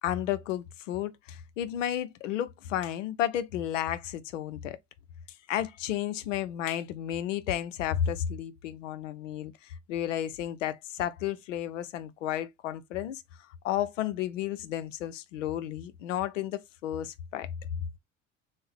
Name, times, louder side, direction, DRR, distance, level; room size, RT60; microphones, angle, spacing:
voice 1, 0.0-4.8 5.5-13.2 13.6-17.5, left 11 dB, 80° left, 0.5 m, -32 dB
3.5 x 2.0 x 3.2 m
hypercardioid pair, 65°, 37 cm